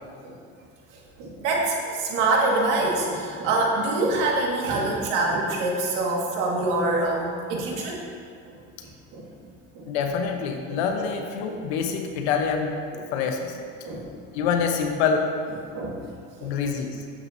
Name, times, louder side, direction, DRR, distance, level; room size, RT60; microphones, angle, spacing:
voice 1, 1.2-8.0 8.8-9.3 9.7-9.9 10.7-10.8 12.9-13.0 13.8-14.0 15.7-16.0 16.4-16.5, right 2 dB, 75° right, -2 dB, 2.0 m, -25 dB
voice 2, 9.9-12.8 13.1-13.6 14.3-15.3 16.4-17.0, left 6 dB, 90° left, 3 dB, 1.1 m, -26 dB
12.5 x 7.7 x 2.8 m, 2.3 s
supercardioid pair, 105°, 32 cm